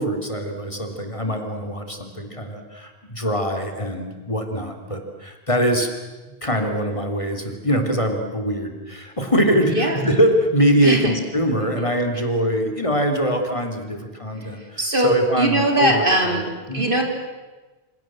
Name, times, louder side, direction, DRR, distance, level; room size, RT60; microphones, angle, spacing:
voice 1, 0.0-5.9 6.4-16.4 16.7-16.9, equal, 30° left, 4 dB, 3.4 m, -23 dB
voice 2, 14.8-17.0, right 1 dB, 60° right, 3 dB, 4.0 m, -20 dB
27.5 x 27.0 x 7.7 m, 1.2 s
omnidirectional pair, 1.0 m